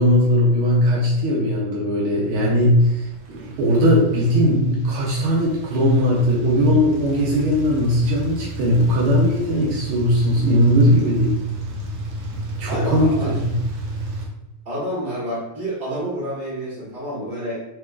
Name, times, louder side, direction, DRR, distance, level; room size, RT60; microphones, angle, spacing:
voice 1, 0.0-11.3 12.6-13.5, equal, 75° right, -4 dB, 1.6 m, -19 dB
sound 1, 2.3-14.3, right 2 dB, 60° right, 1.2 m, -33 dB
voice 2, 12.7-13.3 14.6-17.6, equal, 30° right, -8 dB, 1.6 m, -28 dB
3.9 x 3.3 x 2.3 m, 0.88 s
omnidirectional pair, 2.3 m